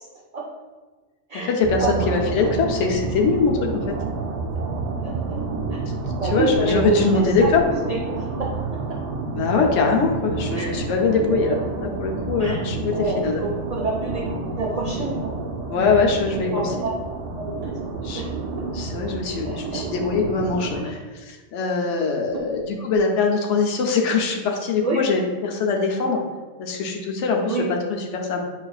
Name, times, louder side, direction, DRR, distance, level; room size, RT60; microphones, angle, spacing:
voice 1, 1.3-4.0 6.3-7.6 9.3-13.4 15.7-16.7 17.9-18.2 18.7-21.0 21.3-26.2 26.6-28.4, left 4 dB, 85° left, 1 dB, 0.9 m, -22 dB
sound 1, 1.6-20.8, right 3 dB, 80° right, 1.0 m, -29 dB
voice 2, 5.0-5.4 5.7-7.5 7.9-9.0 10.5-10.7 11.5-11.6 12.4-12.6 12.9-14.2 14.5-15.4 16.4-16.9 17.3-18.3 18.6-18.7 19.4-19.8 20.7-20.9 22.3-22.4 24.8-25.0 26.7-26.8 27.4-27.7, right 3 dB, 55° right, -4 dB, 0.4 m, -28 dB
6.1 x 2.4 x 2.3 m, 1.3 s
omnidirectional pair, 1.2 m